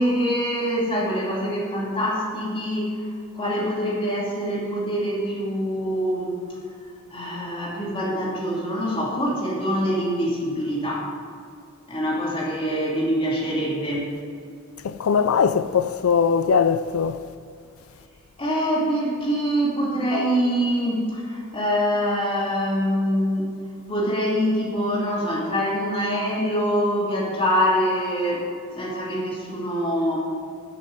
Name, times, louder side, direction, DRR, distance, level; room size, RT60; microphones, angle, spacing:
voice 1, 0.0-3.1 3.3-6.4 7.1-11.1 11.9-14.1 18.4-23.5 23.9-30.2, equal, 25° left, 2.8 m, -24 dB
voice 2, 14.8-17.2, left 6 dB, 90° left, 0.4 m, -20 dB
11.0 x 6.4 x 7.9 m
head